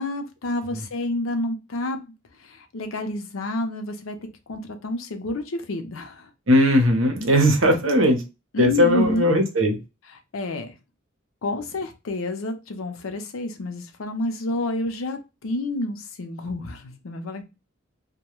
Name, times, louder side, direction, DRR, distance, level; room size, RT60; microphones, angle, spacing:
voice 1, 0.0-2.0 2.4-4.2 4.5-6.3 8.5-9.3 10.3-10.8 11.4-17.4, left 1 dB, 85° left, 6 dB, 0.6 m, -29 dB
voice 2, 6.5-8.2 8.6-9.8, equal, 70° right, 4 dB, 0.8 m, -18 dB
2.2 x 2.1 x 2.9 m, 0.27 s
head